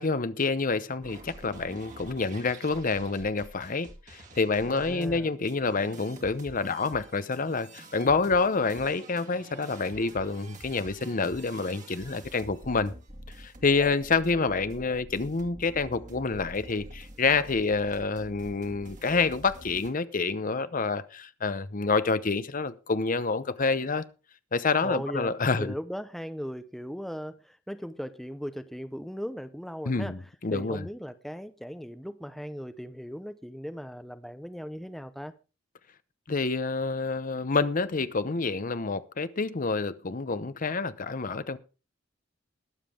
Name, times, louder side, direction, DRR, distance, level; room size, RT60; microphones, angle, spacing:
voice 1, 0.0-12.9 13.4-24.0 24.5-25.7 29.8-30.9 36.3-41.6, left 4 dB, 45° left, 0.8 m, -28 dB
sound 1, 1.0-19.9, right 1 dB, 40° right, 2.2 m, -48 dB
voice 2, 4.7-5.3 24.8-30.2 30.5-35.3, equal, ahead, 0.7 m, -38 dB
20.5 x 7.4 x 3.6 m
head